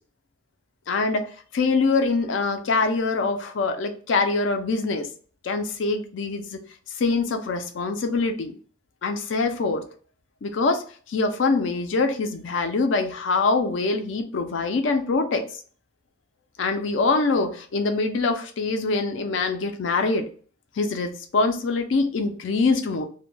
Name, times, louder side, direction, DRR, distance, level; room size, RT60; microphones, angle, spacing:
voice 1, 0.9-5.1 5.4-6.6 7.0-8.5 9.0-9.8 10.4-15.4 16.6-20.3 20.8-23.1, left 3 dB, 65° left, 0.4 m, -24 dB
2.1 x 2.1 x 3.1 m
head